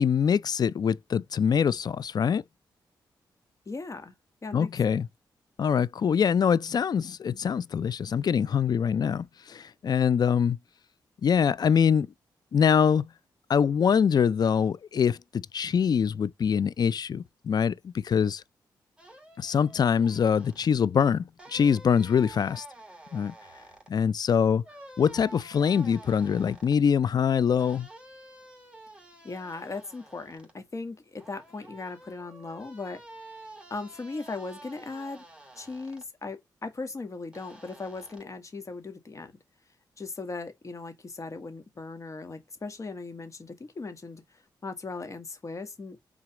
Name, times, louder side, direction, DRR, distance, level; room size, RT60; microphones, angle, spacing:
voice 1, 0.0-2.4 4.5-5.1 5.6-10.6 11.2-12.1 12.5-13.1 13.5-18.4 19.4-22.6 23.1-23.3 23.9-24.6 25.0-27.9, left 7 dB, 55° left, 0.5 m, -24 dB
voice 2, 3.7-4.1 4.4-5.0 29.2-33.0 33.7-35.3 35.6-39.3 40.0-46.0, left 3 dB, 40° left, 1.8 m, -38 dB
sound 1, 19.0-20.7 21.4-23.9 24.6-26.8 27.6-30.5 31.2-36.1 37.3-38.2, right 1 dB, 10° right, 2.9 m, -49 dB
5.9 x 3.9 x 5.0 m
cardioid pair, 70°, 8 cm